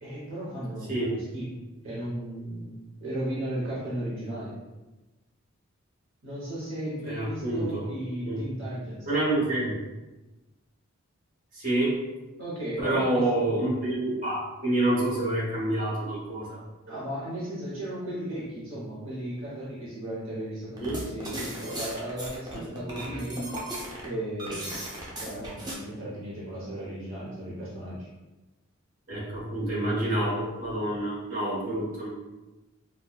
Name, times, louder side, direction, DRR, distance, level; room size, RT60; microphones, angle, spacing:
voice 1, 0.0-2.7 3.0-4.5 6.2-9.1 12.4-13.4 16.8-23.5 24.0-24.8 25.1-28.1, right 1 dB, 65° right, -8 dB, 1.0 m, -35 dB
voice 2, 7.0-7.8 8.3-8.4 9.1-9.7 11.5-12.0 12.8-16.6 20.8-21.0 22.9-23.0 29.1-32.1, right 1 dB, 40° right, -7 dB, 1.2 m, -27 dB
sound 1, 20.8-25.7, right 1 dB, 20° right, 0.6 m, -36 dB
4.2 x 2.3 x 2.3 m, 1.1 s
head